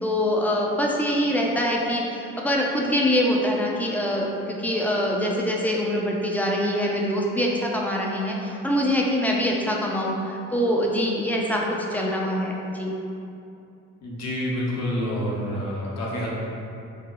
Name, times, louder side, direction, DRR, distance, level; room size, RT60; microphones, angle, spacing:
voice 1, 0.0-11.6 11.9-12.9, equal, 5° left, -2 dB, 0.4 m, -24 dB
voice 2, 14.0-16.4, equal, 60° left, -5 dB, 0.8 m, -28 dB
4.8 x 2.0 x 2.3 m, 2.7 s
cardioid pair, 90°, 30 cm